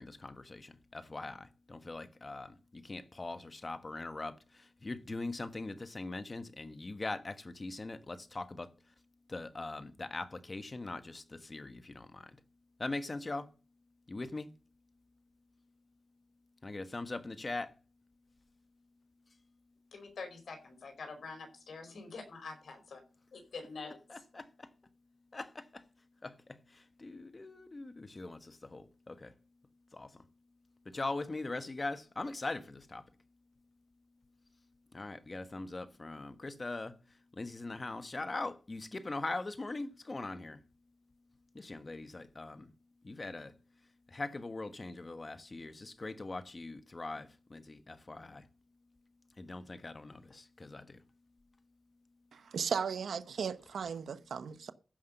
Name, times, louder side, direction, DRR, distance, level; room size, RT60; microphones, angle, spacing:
voice 1, 0.0-8.7 9.3-12.3 12.8-13.5 14.1-14.5 16.6-17.7 24.1-24.7 25.3-25.8 26.2-29.3 29.9-30.1 30.8-33.0 34.9-36.9 37.4-40.6 41.5-42.7 43.0-43.5 44.1-48.5 49.4-51.0, left 2 dB, 35° left, 1.4 m, -41 dB
voice 2, 19.9-23.0 23.3-24.2, left 4 dB, 75° left, 4.9 m, -46 dB
voice 3, 52.3-54.7, right 6 dB, 85° right, 0.9 m, -36 dB
15.0 x 5.8 x 6.7 m
cardioid pair, 75°, 0 cm